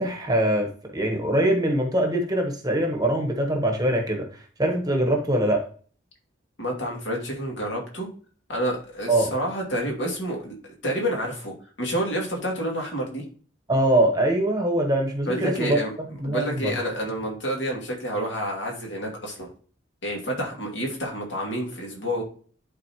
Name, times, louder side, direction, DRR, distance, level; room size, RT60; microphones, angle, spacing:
voice 1, 0.0-5.7 9.1-9.3 13.7-15.8 16.2-16.7, right 1 dB, 20° right, 3 dB, 1.1 m, -23 dB
voice 2, 6.6-8.1 8.5-10.6 10.8-13.2 15.3-15.9 16.2-19.5 20.0-22.2, equal, 65° left, -1 dB, 2.6 m, -29 dB
11.0 x 4.1 x 3.0 m, 0.43 s
head